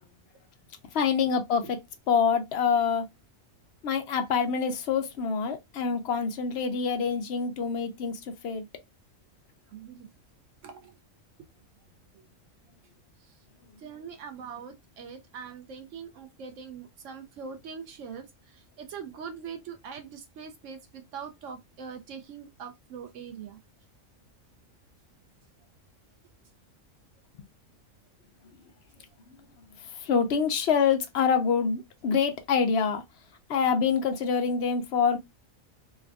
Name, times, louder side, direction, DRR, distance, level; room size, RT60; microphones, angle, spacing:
voice 1, 0.9-1.8 2.1-3.1 3.8-8.6 29.8-33.0 33.5-35.2, left 6 dB, 60° left, 0.8 m, -26 dB
voice 2, 9.7-10.1 10.6-11.0 12.1-12.3 13.2-13.4 13.8-23.6, right 6 dB, 75° right, 0.9 m, -42 dB
3.3 x 2.3 x 2.3 m
omnidirectional pair, 1.4 m